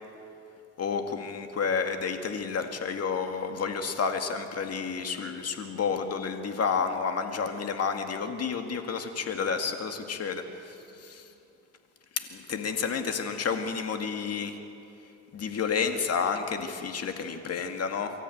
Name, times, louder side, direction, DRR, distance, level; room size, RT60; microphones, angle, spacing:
voice 1, 0.8-11.2 12.2-14.6 15.3-18.1, left 5 dB, 55° left, 6 dB, 2.1 m, -30 dB
24.5 x 13.5 x 9.3 m, 2.7 s
cardioid pair, 90°, 30 cm